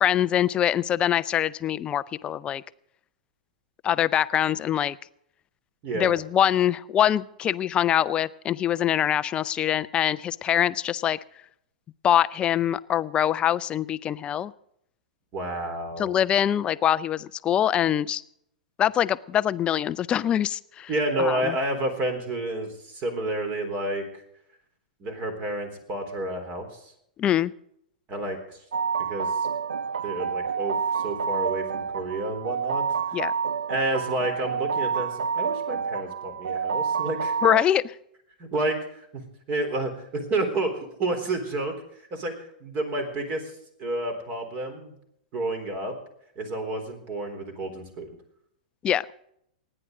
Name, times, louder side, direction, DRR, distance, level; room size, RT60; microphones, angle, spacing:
voice 1, 0.0-2.6 3.8-5.0 5.9-11.2 12.0-14.5 16.0-18.2 18.8-20.9 21.2-21.5 27.2-27.5 33.1-33.3 37.4-37.9 48.8-49.1, left 10 dB, 25° left, 17 dB, 0.5 m, -24 dB
voice 2, 15.3-16.1 20.9-24.0 25.0-26.8 28.1-28.6 29.1-29.4 30.0-32.8 33.7-37.4 38.4-39.2 39.5-40.7 41.0-41.7 42.1-43.5 43.8-44.9 45.3-46.0 46.4-48.1, right 1 dB, 35° right, 6 dB, 3.7 m, -30 dB
sound 1, 28.7-37.7, right 6 dB, 75° right, 0.5 m, -28 dB
27.5 x 10.0 x 3.9 m, 0.73 s
figure-of-eight pair, 105°, 4 cm